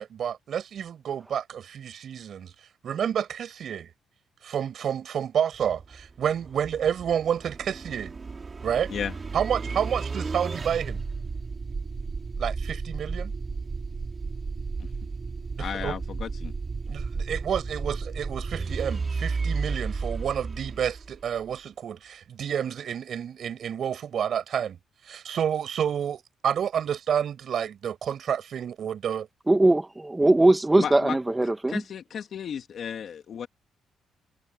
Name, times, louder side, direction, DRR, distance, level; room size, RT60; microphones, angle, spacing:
voice 1, 0.0-2.5 2.8-3.9 4.4-8.1 8.6-8.9 9.3-11.0 12.4-13.3 15.6-15.9 16.9-24.8 25.1-29.3, right 8 dB, 60° right, 6.8 m, -29 dB
sound 1, 5.5-21.5, right 4 dB, 35° right, 4.1 m, -33 dB
voice 2, 15.6-16.5 30.8-31.2 31.7-33.5, left 8 dB, 60° left, 2.1 m, -34 dB
voice 3, 29.5-31.8, right 2 dB, 15° right, 1.6 m, -20 dB
cardioid pair, 90°, 0 cm